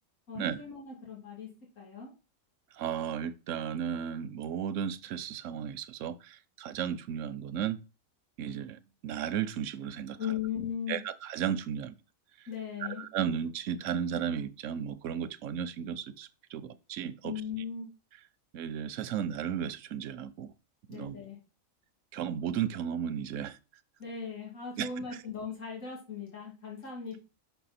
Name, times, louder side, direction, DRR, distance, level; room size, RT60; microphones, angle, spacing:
voice 1, 0.3-1.5 1.8-2.1 10.2-11.0 12.5-13.0 17.2-17.9 20.9-21.4 24.0-27.2, left 7 dB, 70° left, 3.0 m, -38 dB
voice 2, 2.7-7.8 8.4-10.2 10.9-11.9 13.0-17.3 18.5-20.5 20.9-21.2 22.1-23.6 24.8-24.9, right 8 dB, 75° right, 0.9 m, -34 dB
5.8 x 5.4 x 4.2 m
omnidirectional pair, 1.4 m